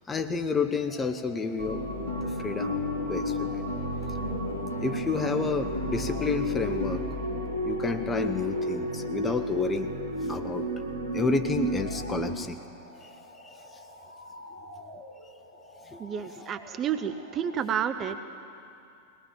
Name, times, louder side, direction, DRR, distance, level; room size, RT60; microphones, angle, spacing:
voice 1, 0.1-1.8 2.2-2.8 3.1-3.6 4.8-7.0 7.6-9.9 10.3-10.7 11.1-12.6 13.0-13.1 13.4-13.5 15.9-16.0, left 4 dB, 15° left, 7 dB, 1.1 m, -30 dB
sound 1, 0.8-17.6, left 1 dB, 75° left, 7.1 m, -49 dB
sound 2, 1.6-12.4, right 1 dB, 65° right, 1.4 m, -33 dB
Guitar, 1.9-7.0, left 4 dB, 60° left, 4.3 m, -34 dB
voice 2, 16.0-18.2, right 8 dB, 30° right, 9 dB, 0.9 m, -30 dB
20.5 x 18.5 x 7.6 m, 2.6 s
figure-of-eight pair, 90°, 0 cm